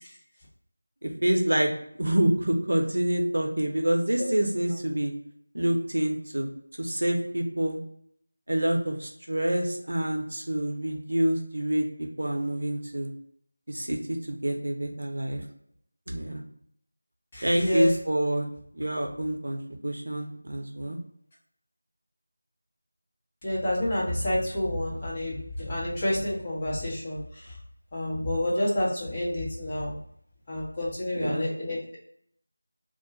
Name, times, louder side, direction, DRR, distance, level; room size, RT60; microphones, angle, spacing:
voice 1, 1.0-1.7 1.9-5.1 5.5-6.5 6.8-7.8 8.5-13.1 13.7-15.4 16.1-16.4 17.4-18.5 18.7-21.0 31.2-31.5, right 1 dB, 70° right, 3 dB, 0.6 m, -27 dB
voice 2, 17.3-18.0 23.4-27.5 27.9-30.0 30.5-31.8, left 1 dB, 25° left, -7 dB, 0.8 m, -29 dB
2.4 x 2.3 x 3.9 m, 0.68 s
figure-of-eight pair, 170°, 0 cm